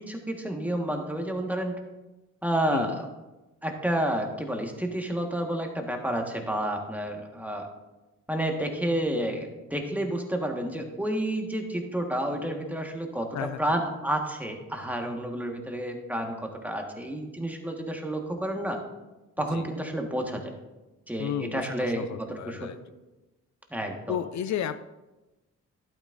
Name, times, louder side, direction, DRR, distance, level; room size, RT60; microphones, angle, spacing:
voice 1, 0.0-1.8 2.4-3.1 3.6-7.7 8.3-18.8 19.4-20.6 21.1-22.7 23.7-24.2, right 1 dB, 5° right, 2 dB, 1.5 m, -30 dB
voice 2, 21.2-22.8 24.1-24.8, left 9 dB, 65° left, 12 dB, 0.4 m, -33 dB
11.5 x 8.9 x 2.6 m, 1.1 s
cardioid pair, 75°, 31 cm